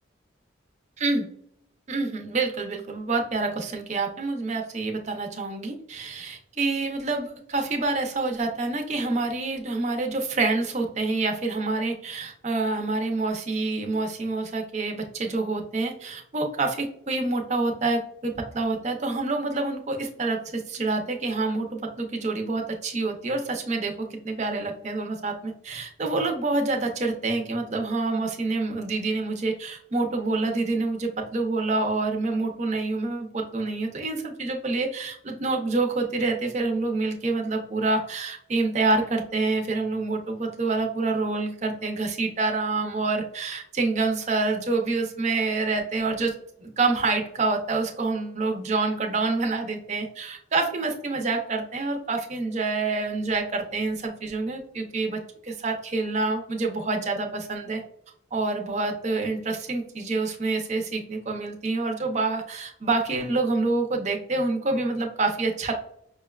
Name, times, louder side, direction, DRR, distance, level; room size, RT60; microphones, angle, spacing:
voice 1, 1.9-46.3 46.6-57.8 58.3-65.7, right 3 dB, 35° right, 4 dB, 0.5 m, -27 dB
5.4 x 2.2 x 2.3 m, 0.70 s
head